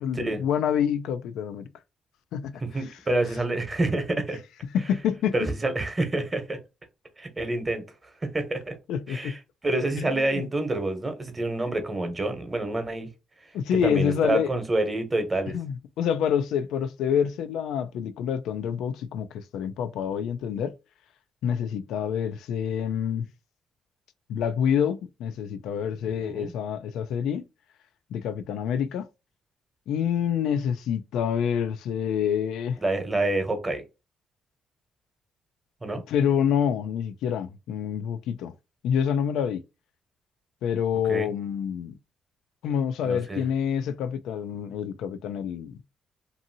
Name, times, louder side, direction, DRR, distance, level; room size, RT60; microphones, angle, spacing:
voice 1, 0.0-1.7 2.3-2.6 4.7-5.3 8.9-9.4 10.0-10.5 13.5-14.5 15.5-20.7 21.4-23.3 24.3-27.4 28.1-29.1 29.9-32.8 36.1-38.5 38.8-39.6 40.6-41.9 42.6-45.8, left 8 dB, 85° left, 0.3 m, -27 dB
voice 2, 2.7-4.4 5.3-6.6 7.2-8.8 9.1-13.1 13.7-15.5 26.2-26.5 32.8-33.8 35.8-36.0 41.0-41.3 43.0-43.4, right 2 dB, 25° right, 1.0 m, -28 dB
2.7 x 2.6 x 2.6 m
cardioid pair, 90°, 0 cm